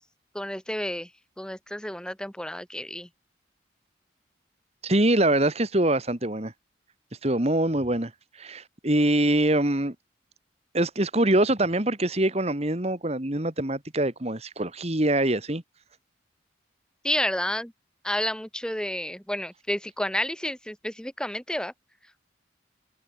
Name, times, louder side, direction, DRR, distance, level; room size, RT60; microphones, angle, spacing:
voice 1, 0.3-1.1 1.4-3.1 17.0-17.7 18.0-21.7, left 1 dB, 5° left, 1.7 m, -30 dB
voice 2, 4.8-6.5 7.2-8.1 8.4-10.0 10.7-15.6, right 1 dB, 35° right, 2.0 m, -24 dB
head